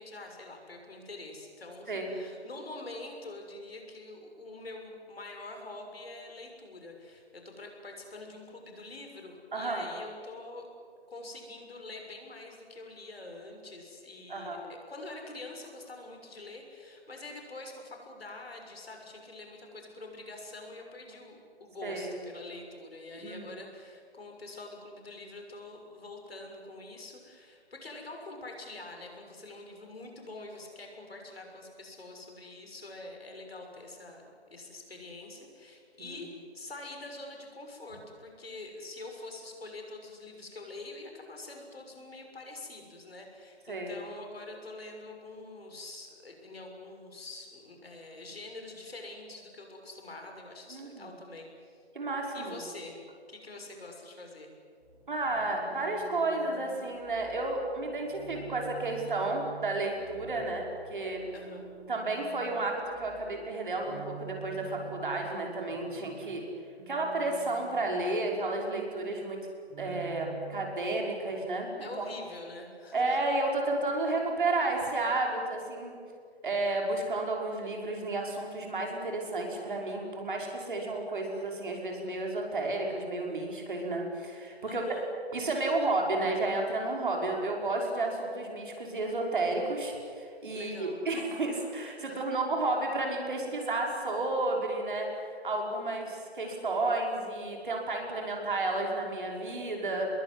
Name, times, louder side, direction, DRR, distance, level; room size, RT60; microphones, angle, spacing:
voice 1, 0.0-10.7 11.1-51.9 52.3-53.0 53.3-54.5 61.3-61.7 71.8-73.2 84.7-85.1 90.5-91.0 92.0-92.3, left 2 dB, 65° left, 2 dB, 6.6 m, -45 dB
voice 2, 9.5-9.9 14.3-14.6 21.8-22.1 23.2-23.5 36.0-36.2 43.7-43.9 50.7-51.1 51.9-52.6 55.1-61.2 61.9-66.4 66.9-69.5 69.8-72.1 72.9-76.0 76.4-85.0 85.3-95.1 95.4-100.1, right 2 dB, 50° right, 1 dB, 5.8 m, -32 dB
sound 1, 54.8-70.7, right 7 dB, 10° right, 1.7 m, -49 dB
25.0 x 21.5 x 9.8 m, 2.2 s
figure-of-eight pair, 170°, 32 cm